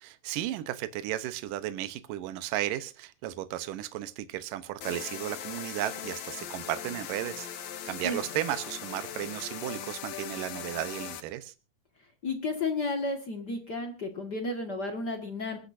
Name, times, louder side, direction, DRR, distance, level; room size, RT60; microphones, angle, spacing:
voice 1, 0.0-7.5 7.9-11.5, right 13 dB, 80° right, 11 dB, 2.5 m, -34 dB
sound 1, 4.8-11.2, left 9 dB, 60° left, 2.2 m, -40 dB
voice 2, 12.2-15.6, left 2 dB, 40° left, 4 dB, 1.8 m, -32 dB
27.5 x 10.5 x 2.7 m, 0.32 s
omnidirectional pair, 3.9 m